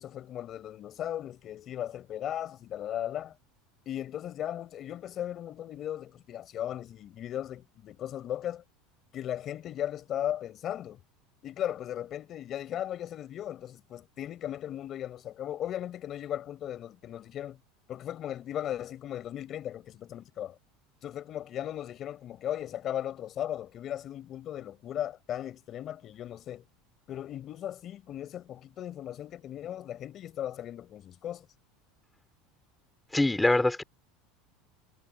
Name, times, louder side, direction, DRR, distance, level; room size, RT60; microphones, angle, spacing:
voice 1, 0.0-3.3 3.9-8.6 9.1-11.0 11.4-17.6 17.9-20.6 21.0-26.6 27.1-31.5, left 11 dB, 30° left, 4.2 m, -37 dB
voice 2, 33.1-33.8, left 2 dB, 5° left, 2.8 m, -24 dB
cardioid pair, 170°, 0 cm